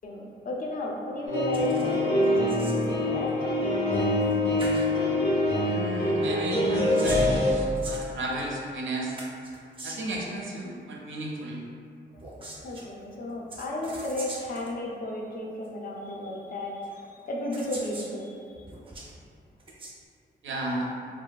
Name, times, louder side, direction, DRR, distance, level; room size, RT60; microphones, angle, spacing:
voice 1, 0.0-3.5 12.1-18.7, left 1 dB, 50° left, -1 dB, 0.4 m, -34 dB
sound 1, 1.3-7.5, left 1 dB, 80° left, 0.7 m, -25 dB
sound 2, 1.5-2.0 2.2-2.9 4.2-4.3 4.6-4.9 6.6-8.6 9.2-10.2 12.1-12.9 13.5-14.7 15.6-15.7 16.8-16.9 17.5-18.1 18.6-19.1 19.6-19.9, right 2 dB, 30° right, 0.4 m, -42 dB
voice 2, 5.6-9.2 9.8-11.6 20.4-20.9, right 2 dB, 85° right, -2 dB, 0.5 m, -34 dB
2.6 x 2.3 x 2.2 m, 2.3 s
wide cardioid pair, 125°, 19 cm